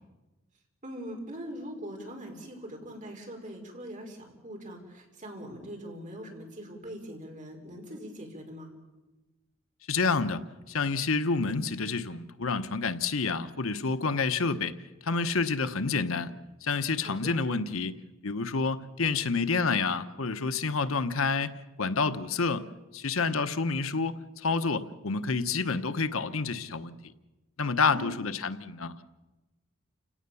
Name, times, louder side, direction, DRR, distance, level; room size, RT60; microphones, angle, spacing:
voice 1, 0.8-8.7 17.0-17.3 27.8-28.2, equal, 40° right, 1 dB, 5.2 m, -42 dB
voice 2, 9.9-14.7 15.0-16.3 16.6-17.9 18.2-22.6 22.9-27.0 27.6-29.0, left 4 dB, 80° left, 10 dB, 1.1 m, -29 dB
30.0 x 17.5 x 7.0 m, 1.1 s
head